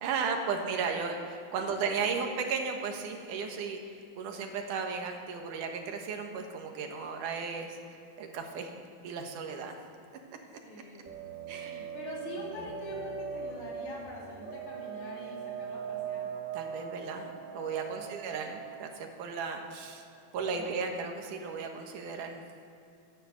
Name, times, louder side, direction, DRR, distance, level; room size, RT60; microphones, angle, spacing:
voice 1, 0.0-7.8 8.2-8.7 9.0-9.8 11.5-11.9 12.5-12.6 16.5-17.3 17.5-20.0 20.3-22.4, right 5 dB, 85° right, 3 dB, 2.9 m, -35 dB
voice 2, 10.6-11.1 11.7-16.3 17.9-18.3 20.5-20.8, left 1 dB, 75° left, -4 dB, 4.4 m, -44 dB
sound 1, 11.1-20.3, right 6 dB, 40° right, 1.2 m, -41 dB
13.0 x 9.7 x 7.9 m, 2.7 s
omnidirectional pair, 3.6 m